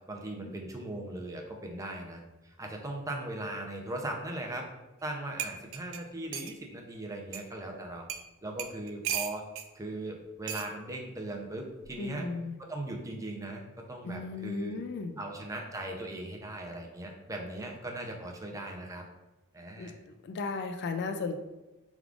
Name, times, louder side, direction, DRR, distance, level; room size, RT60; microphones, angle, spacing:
voice 1, 0.1-4.7 5.0-8.1 8.4-9.5 9.7-12.3 12.6-14.7 15.2-19.0 19.5-19.9, right 1 dB, 15° right, 1 dB, 0.5 m, -39 dB
sound 1, 5.0-5.1 5.4-6.6 7.3-7.4 8.1-8.3 8.6-9.7 10.5-10.7 11.8-12.1, right 9 dB, 60° right, 0.4 m, -36 dB
voice 2, 12.0-12.6 14.0-15.2 19.8-21.4, left 3 dB, 50° left, 7 dB, 0.3 m, -36 dB
4.7 x 3.5 x 2.4 m, 1.0 s
head